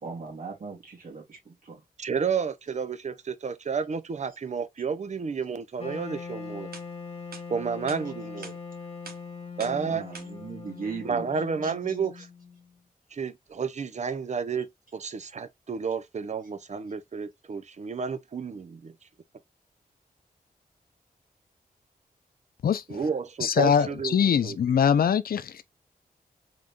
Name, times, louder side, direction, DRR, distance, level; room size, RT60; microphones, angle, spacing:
voice 1, 0.0-1.8 9.6-11.3 11.6-11.7, right 4 dB, 65° right, 2.1 m, -39 dB
voice 2, 2.0-6.7 7.5-8.6 9.6-10.0 11.0-12.3 13.1-18.9 22.9-24.2 24.4-24.6, right 6 dB, 50° right, 0.5 m, -31 dB
Wind instrument woodwind instrument, 5.8-12.8, left 5 dB, 40° left, 0.9 m, -41 dB
sound 1, 6.2-6.3 6.7-6.9 7.3-7.4 7.9-8.0 8.4-8.6 9.0-9.2 9.6-9.8 10.1-10.3, right 4 dB, 80° right, 1.0 m, -43 dB
voice 3, 22.6-23.0 23.4-25.6, left 7 dB, 70° left, 0.4 m, -23 dB
3.9 x 3.5 x 2.4 m
wide cardioid pair, 95°, 16 cm